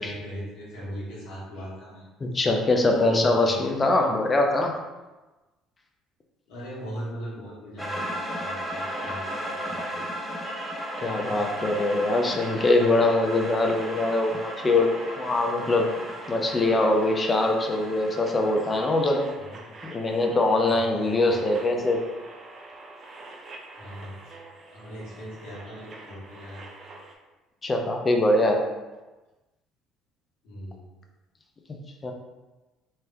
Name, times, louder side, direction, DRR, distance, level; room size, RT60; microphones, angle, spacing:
voice 1, 0.0-2.0 2.9-4.0 6.5-10.0 19.4-19.8 20.7-21.4 23.8-24.4 24.7-26.9 30.4-30.9, equal, 70° left, -7 dB, 1.3 m, -39 dB
voice 2, 2.2-4.7 11.0-15.9 16.3-19.4 19.8-22.0 27.6-28.7 31.7-32.1, left 2 dB, 30° left, 2 dB, 0.5 m, -23 dB
sound 1, 7.8-19.2, equal, 5° left, 0.9 m, -36 dB
sound 2, 8.7-27.1, right 2 dB, 40° right, 0.5 m, -44 dB
3.1 x 2.8 x 2.2 m, 1.1 s
hypercardioid pair, 60°, 0 cm